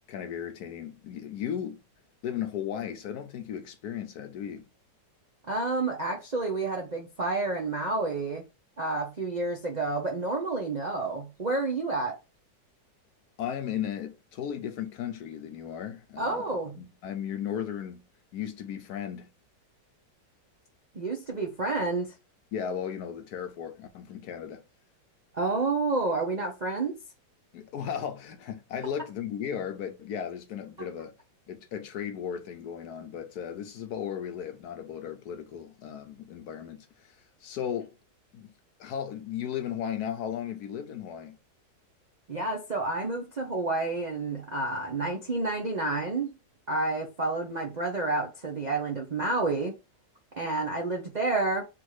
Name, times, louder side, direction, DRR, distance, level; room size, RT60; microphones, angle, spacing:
voice 1, 0.1-1.8 2.2-4.7 13.4-18.0 18.3-19.3 22.5-24.6 27.5-31.2 31.5-37.9 38.3-38.5 38.8-41.4, left 9 dB, 70° left, 1.1 m, -36 dB
voice 2, 5.5-8.4 8.8-12.2 16.2-16.7 20.9-22.1 25.3-27.0 42.3-46.3 46.7-49.8 50.4-51.7, right 3 dB, 55° right, 0.4 m, -29 dB
3.5 x 2.6 x 4.6 m
omnidirectional pair, 1.9 m